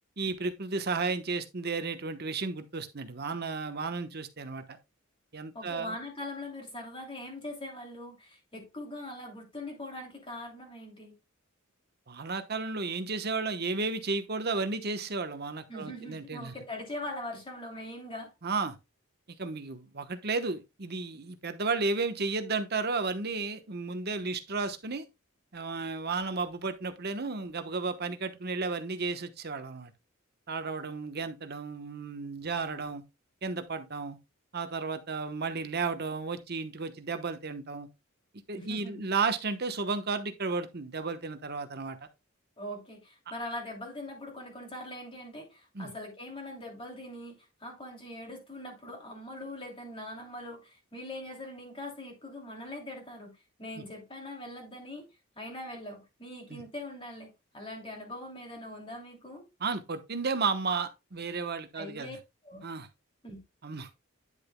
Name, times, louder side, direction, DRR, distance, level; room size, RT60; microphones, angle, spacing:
voice 1, 0.2-4.8 5.3-5.9 12.1-16.5 18.4-18.8 19.4-25.0 25.5-29.9 30.5-33.0 33.4-34.2 34.5-37.9 38.5-42.0 45.7-45.9 53.8-53.9 56.5-56.6 59.6-62.2 62.6-62.9 63.6-63.9, right 4 dB, 50° right, 1.0 m, -33 dB
voice 2, 5.5-11.1 15.7-18.3 38.5-39.0 42.6-53.3 53.6-55.1 55.3-59.5 61.7-62.2 62.4-62.6 63.2-63.4, left 1 dB, 25° left, 2.9 m, -42 dB
10.0 x 6.9 x 2.2 m
head